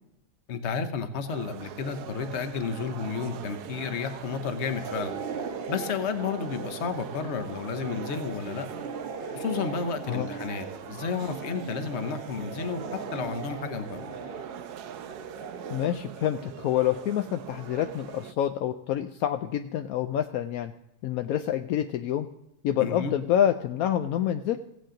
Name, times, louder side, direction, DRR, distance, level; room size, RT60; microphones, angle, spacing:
voice 1, 0.5-5.1 5.7-8.7 9.3-14.1 22.8-23.1, left 5 dB, 50° left, 9 dB, 0.9 m, -32 dB
sound 1, 1.3-18.3, right 10 dB, 70° right, 1.0 m, -42 dB
sound 2, 4.6-15.9, right 5 dB, 40° right, 0.9 m, -39 dB
voice 2, 15.7-20.7 21.0-22.3 22.6-24.6, left 11 dB, 75° left, 8 dB, 0.8 m, -27 dB
16.0 x 8.4 x 3.8 m, 0.86 s
omnidirectional pair, 2.0 m